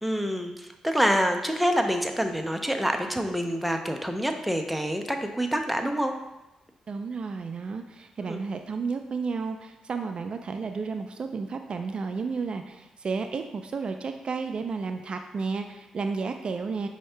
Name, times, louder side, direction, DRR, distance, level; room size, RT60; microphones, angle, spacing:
voice 1, 0.0-6.1 8.3-8.4, equal, ahead, 4 dB, 0.5 m, -26 dB
voice 2, 6.9-16.9, right 4 dB, 50° right, 6 dB, 0.3 m, -32 dB
5.3 x 2.7 x 3.3 m, 0.95 s
cardioid pair, 60°, 2 cm